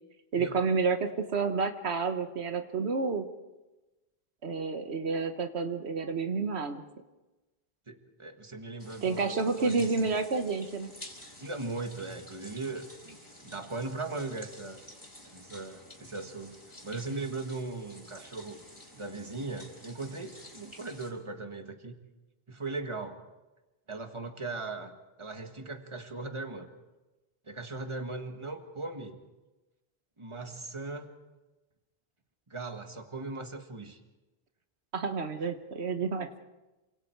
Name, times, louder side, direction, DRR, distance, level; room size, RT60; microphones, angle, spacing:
voice 1, 0.3-3.3 4.4-6.8 9.0-10.9 34.9-36.4, right 4 dB, 90° right, 7 dB, 1.5 m, -30 dB
voice 2, 7.9-10.2 11.4-14.8 15.2-16.6 16.8-18.6 18.9-22.0 22.5-23.2 23.9-24.9 25.2-26.7 27.5-29.2 30.2-31.1 32.5-34.0, right 3 dB, 30° right, 5 dB, 1.8 m, -39 dB
sound 1, 8.8-21.1, left 1 dB, 20° left, 4.6 m, -51 dB
28.0 x 26.0 x 4.7 m, 1.1 s
omnidirectional pair, 1.1 m